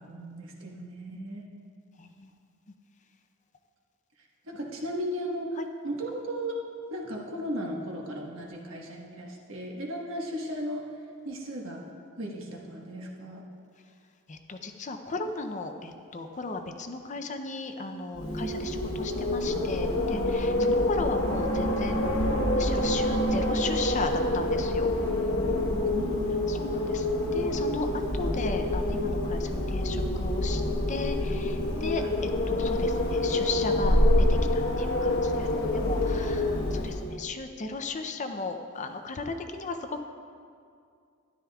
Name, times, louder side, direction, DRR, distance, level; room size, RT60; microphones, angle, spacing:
voice 1, 0.0-1.5 4.5-5.6 5.8-6.6 6.9-10.9 11.2-11.8 12.2-13.4 20.6-20.7 25.9-26.7 32.0-32.2, equal, 70° right, -1 dB, 1.4 m, -36 dB
voice 2, 2.0-2.3 5.6-5.7 14.3-22.0 22.3-25.0 26.5-27.1 27.3-30.6 30.9-34.0 34.3-35.5 35.7-40.0, left 3 dB, 35° left, 6 dB, 0.5 m, -36 dB
Wind, 18.1-37.2, left 1 dB, 70° left, 1.2 m, -27 dB
13.0 x 11.5 x 2.4 m, 2.3 s
head